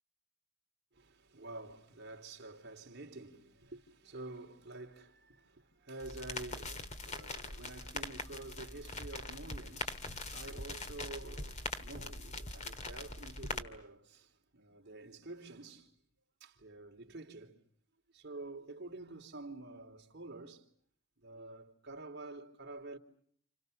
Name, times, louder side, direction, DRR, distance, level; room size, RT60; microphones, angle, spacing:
voice 1, 0.9-15.9 16.4-17.6 18.1-20.7 21.2-23.0, right 2 dB, 50° right, 3.4 m, -49 dB
sound 1, 6.0-13.6, left 2 dB, 35° left, 2.2 m, -42 dB
30.0 x 29.0 x 6.7 m
head